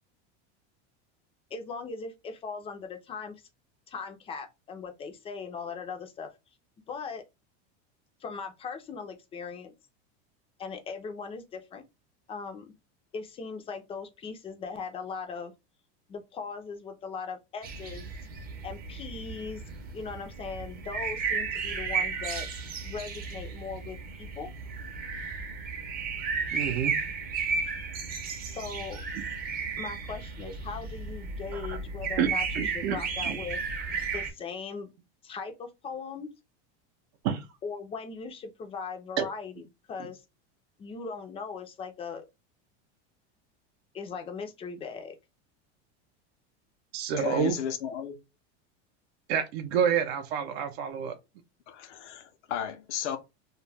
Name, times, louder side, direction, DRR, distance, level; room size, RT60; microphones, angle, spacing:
voice 1, 1.5-3.4 3.9-6.3 6.9-7.2 8.2-9.7 10.6-11.8 12.3-12.7 13.1-15.5 16.1-18.1 18.6-19.6 19.9-22.5 22.8-24.5 28.5-29.0 29.8-33.6 34.1-34.9 35.2-36.3 37.6-40.2 40.8-42.2 43.9-45.2, left 5 dB, 20° left, 0.4 m, -39 dB
sound 1, 17.6-34.3, right 5 dB, 25° right, 0.6 m, -34 dB
voice 2, 26.5-26.9 31.5-31.8 32.2-32.3 32.5-33.0 33.3-33.4 37.2-37.4 39.2-39.3 46.9-47.6 49.3-51.1, right 8 dB, 70° right, 0.6 m, -28 dB
voice 3, 47.2-48.2 51.7-53.2, left 9 dB, 90° left, 0.6 m, -34 dB
2.3 x 2.1 x 3.2 m
supercardioid pair, 135°, 34 cm